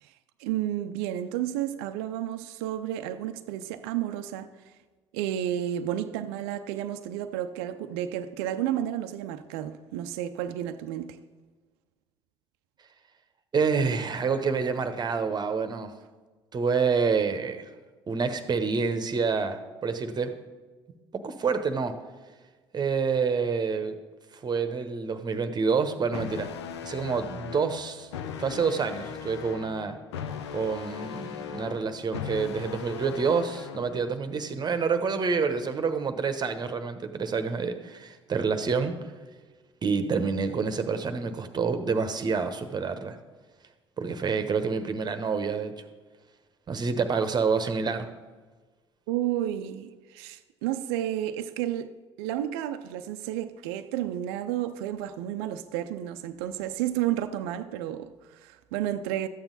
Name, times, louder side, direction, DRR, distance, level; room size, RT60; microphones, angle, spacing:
voice 1, 0.4-4.5 5.1-11.2 49.1-51.9 52.2-59.3, right 12 dB, 60° right, 0.5 m, -31 dB
voice 2, 13.5-15.9 16.5-17.7 18.1-20.3 21.1-21.9 22.7-23.9 24.4-26.5 26.8-28.1 28.4-30.0 30.5-39.0 39.8-43.2 44.0-45.7 46.7-48.1, right 5 dB, 30° right, 1.1 m, -27 dB
sound 1, 26.1-34.1, left 7 dB, 70° left, 0.6 m, -39 dB
13.0 x 8.9 x 4.0 m
figure-of-eight pair, 60°, 14 cm